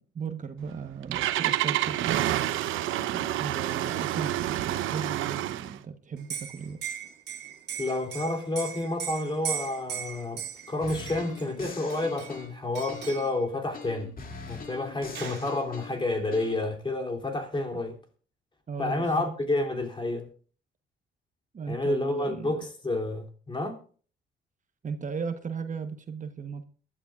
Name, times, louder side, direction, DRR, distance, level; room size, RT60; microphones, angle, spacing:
voice 1, 0.1-2.4 3.1-6.8 18.7-19.1 21.5-22.6 24.8-26.6, right 6 dB, 40° right, 1.1 m, -36 dB
Engine starting, 0.6-5.8, right 13 dB, 90° right, 0.8 m, -28 dB
Liquid, 6.2-11.5 11.9-12.5 12.7-13.3 14.5-14.6 14.9-15.5, right 9 dB, 60° right, 2.6 m, -38 dB
voice 2, 7.8-10.4 10.7-14.1 14.5-18.0 18.8-20.3 21.7-23.8, left 2 dB, 25° left, 3.0 m, -29 dB
sound 1, 10.8-13.3 13.7-16.6, left 4 dB, 45° left, 2.7 m, -43 dB
22.5 x 12.0 x 2.5 m
cardioid pair, 90°, 20 cm